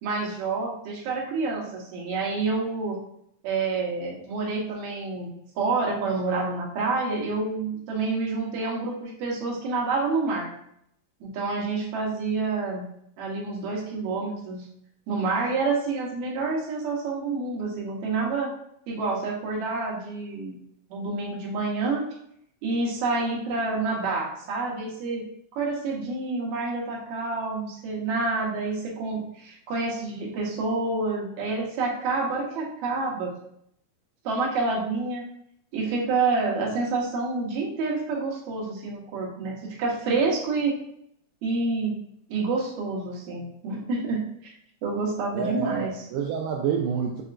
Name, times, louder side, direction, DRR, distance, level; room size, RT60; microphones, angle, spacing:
voice 1, 0.0-3.0 3.4-10.5 11.2-12.8 13.2-14.6 15.1-18.5 18.9-20.6 20.9-22.0 22.6-25.2 25.6-33.3 34.2-35.2 35.7-40.7 41.4-42.0 42.3-44.5 44.8-45.9, right 3 dB, 65° right, -3 dB, 2.2 m, -28 dB
voice 2, 45.3-47.2, right 7 dB, 85° right, 0 dB, 2.2 m, -28 dB
6.6 x 2.8 x 2.4 m, 0.70 s
omnidirectional pair, 4.0 m